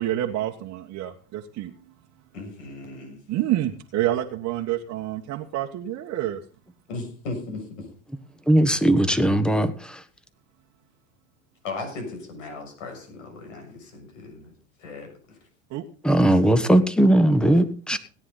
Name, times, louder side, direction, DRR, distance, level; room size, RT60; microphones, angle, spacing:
voice 1, 0.0-1.7 3.3-6.4 15.7-15.8 17.9-18.0, right 13 dB, 45° right, 1.4 m, -28 dB
voice 2, 2.3-3.2 6.9-7.9 11.6-14.5 14.8-15.5, left 3 dB, 75° left, 6.9 m, -37 dB
voice 3, 8.5-10.0 16.0-18.0, right 1 dB, ahead, 1.3 m, -19 dB
17.5 x 9.8 x 4.0 m
hypercardioid pair, 105°, 38 cm